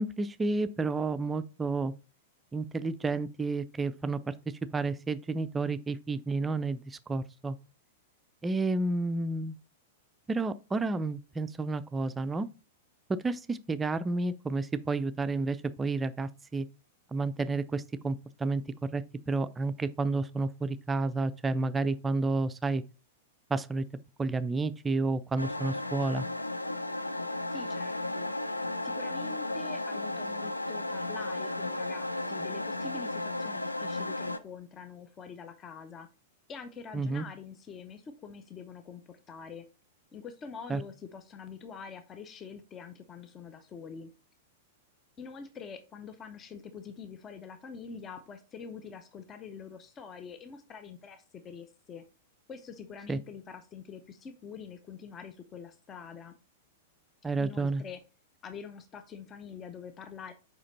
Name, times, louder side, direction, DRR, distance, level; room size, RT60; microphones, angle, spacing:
voice 1, 0.0-1.9 2.5-4.3 4.7-7.6 8.4-9.6 10.3-12.5 13.1-16.7 17.1-18.6 18.9-22.8 23.5-23.8 24.2-26.3 36.9-37.2 40.7-40.8 53.1-53.2 57.2-57.8, right 3 dB, 15° right, 0.4 m, -31 dB
sound 1, 25.4-34.4, left 2 dB, 85° left, 0.4 m, -34 dB
voice 2, 27.5-28.3 28.8-36.1 36.5-39.7 40.1-44.1 45.2-52.0 52.5-56.4 57.4-58.0 58.4-60.3, left 6 dB, 25° left, 0.7 m, -45 dB
5.0 x 4.9 x 4.1 m
figure-of-eight pair, 100°, 0 cm